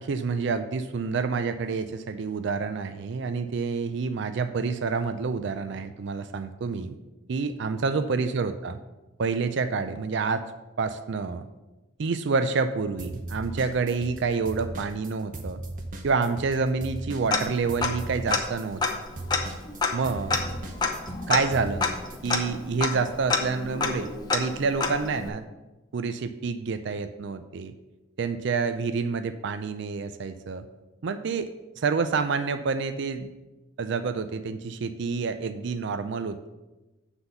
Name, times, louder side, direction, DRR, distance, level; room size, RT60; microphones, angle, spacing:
voice 1, 0.0-7.0 7.3-8.8 9.2-10.4 10.8-11.5 12.0-15.6 16.0-18.8 19.9-20.4 21.3-21.9 22.2-25.4 25.9-27.7 28.2-30.6 31.0-31.5 31.8-33.3 33.8-36.5, right 4 dB, 60° right, 10 dB, 0.4 m, -28 dB
sound 1, 13.0-14.2 14.5-22.4, right 2 dB, 40° right, 0.8 m, -37 dB
Tick-tock, 17.3-18.0 18.3-18.4 18.8-25.3, left 4 dB, 20° left, 0.7 m, -28 dB
7.8 x 4.0 x 6.8 m, 1.1 s
head